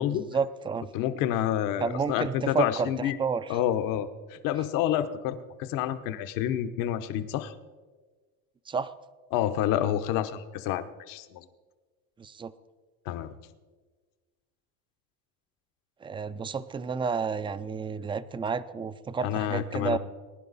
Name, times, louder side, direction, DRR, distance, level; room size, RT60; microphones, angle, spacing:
voice 1, 0.1-0.9 1.8-3.6 8.7-8.9 12.2-12.5 16.0-20.0, right 5 dB, 15° right, 14 dB, 0.4 m, -31 dB
voice 2, 0.9-3.2 3.5-7.5 9.3-11.4 13.1-13.3 19.2-20.0, left 11 dB, 65° left, 11 dB, 1.0 m, -29 dB
21.5 x 10.5 x 4.1 m, 1.4 s
cardioid pair, 130°, 35 cm